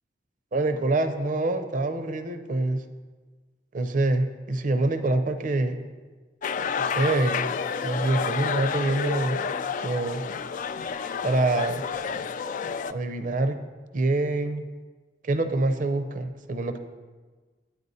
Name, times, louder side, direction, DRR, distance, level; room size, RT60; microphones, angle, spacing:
voice 1, 0.5-2.8 3.7-5.8 6.8-7.5 7.8-9.4 9.8-10.2 11.2-11.8 12.9-13.6 13.9-14.6 15.2-16.8, right 2 dB, 50° right, 9 dB, 0.6 m, -25 dB
sound 1, 6.4-12.9, left 6 dB, 45° left, 0.3 m, -30 dB
10.5 x 9.4 x 4.1 m, 1.4 s
head